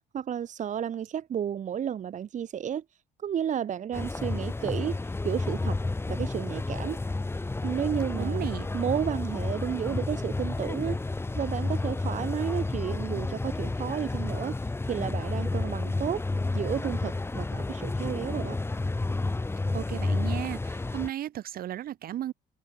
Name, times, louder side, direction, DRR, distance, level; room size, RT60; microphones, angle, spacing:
voice 1, 0.1-2.8 3.2-5.8 6.1-7.0 7.6-8.4 8.7-11.0 11.3-14.5 14.9-16.2 16.5-18.6, right 9 dB, 45° right, 1.9 m, -32 dB
sound 1, 3.9-21.1, left 2 dB, 15° left, 2.3 m, -31 dB
voice 2, 8.2-8.7 19.7-22.3, right 12 dB, 60° right, 2.3 m, -34 dB
cardioid pair, 110°, 17 cm